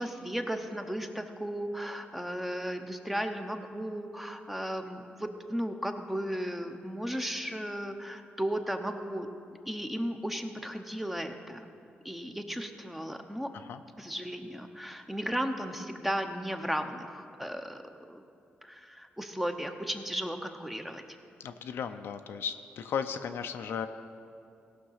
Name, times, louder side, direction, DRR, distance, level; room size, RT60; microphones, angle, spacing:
voice 1, 0.0-9.3 9.7-11.6 12.0-13.5 14.0-17.8 18.1-18.2 18.6-21.0, equal, 5° right, 6 dB, 0.8 m, -35 dB
voice 2, 21.4-23.9, left 7 dB, 75° left, 8 dB, 0.5 m, -35 dB
16.5 x 6.0 x 5.7 m, 2.5 s
cardioid pair, 95°, 4 cm